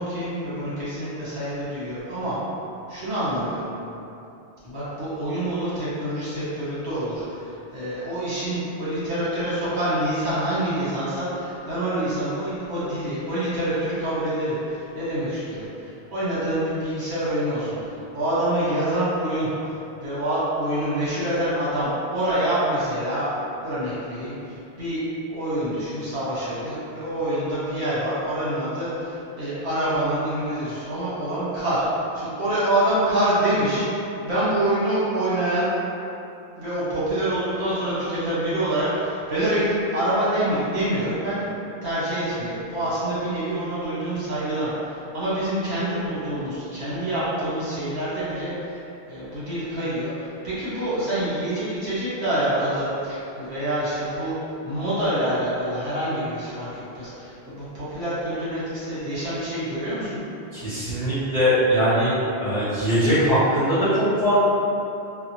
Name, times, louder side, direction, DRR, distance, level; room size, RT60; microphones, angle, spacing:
voice 1, 0.0-2.4 2.9-3.6 4.6-25.0 25.3-33.8 34.2-35.7 36.6-41.5 41.8-54.3 54.6-60.2, right 1 dB, 75° right, -11 dB, 1.5 m, -26 dB
voice 2, 60.5-62.1 62.4-64.3, equal, 60° right, -19 dB, 1.9 m, -21 dB
4.0 x 2.2 x 2.8 m, 2.8 s
omnidirectional pair, 1.1 m